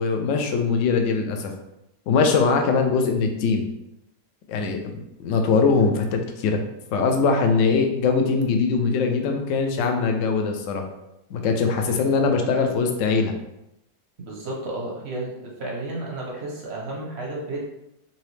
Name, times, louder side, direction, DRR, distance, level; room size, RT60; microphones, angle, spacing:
voice 1, 0.0-1.5 2.1-3.7 4.5-6.6 6.9-10.9 11.3-13.3, left 4 dB, 80° left, 4 dB, 0.7 m, -22 dB
voice 2, 14.2-15.3 15.6-17.6, right 2 dB, 55° right, -2 dB, 0.8 m, -32 dB
4.1 x 2.8 x 3.2 m, 0.85 s
omnidirectional pair, 1.9 m